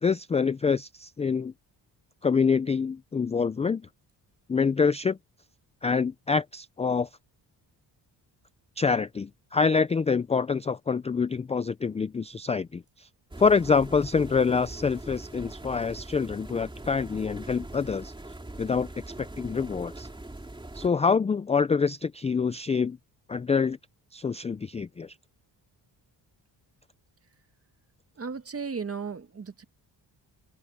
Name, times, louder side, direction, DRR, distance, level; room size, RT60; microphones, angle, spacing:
voice 1, 0.0-1.5 2.2-3.8 4.5-5.2 5.8-7.1 8.8-13.1 13.4-18.1 18.6-18.9 19.2-20.1 20.7-23.0 23.3-23.8 24.1-25.1, left 5 dB, 15° left, 0.3 m, -26 dB
sound 1, 13.3-20.9, right 2 dB, 10° right, 3.0 m, -42 dB
voice 2, 28.2-29.6, right 5 dB, 35° right, 2.0 m, -35 dB
open air
cardioid pair, 120°, 41 cm